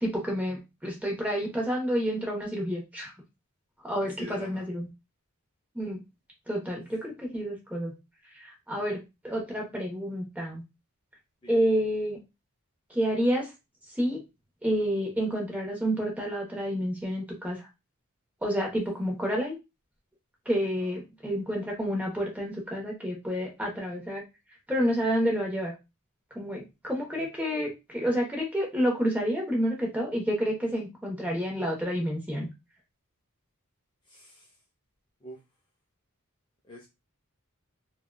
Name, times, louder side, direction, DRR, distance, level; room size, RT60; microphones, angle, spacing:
voice 1, 0.0-3.1 3.8-4.9 5.7-6.0 6.5-7.9 8.4-10.6 11.5-12.2 12.9-13.5 14.0-14.2 14.6-17.7 18.4-19.6 20.5-24.2 24.7-25.7 26.3-32.5, equal, 5° right, -1 dB, 1.0 m, -29 dB
voice 2, 4.2-4.7 11.4-11.5 20.8-20.9 34.1-34.5 35.2-35.4 36.7-36.9, left 1 dB, 20° left, -3 dB, 0.6 m, -44 dB
3.7 x 2.4 x 2.2 m, 0.24 s
head